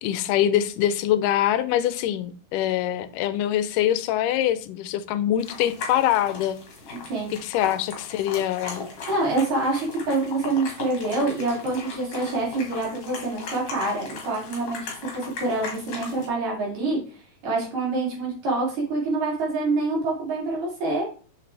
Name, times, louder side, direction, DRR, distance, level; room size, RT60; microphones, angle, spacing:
voice 1, 0.0-6.6 7.4-8.9, left 11 dB, 90° left, 2.2 m, -24 dB
sound 1, 5.4-16.3, left 4 dB, 50° left, 2.6 m, -38 dB
voice 2, 9.1-17.0 17.4-21.1, right 2 dB, 60° right, 3.9 m, -26 dB
6.7 x 6.6 x 3.3 m
omnidirectional pair, 3.6 m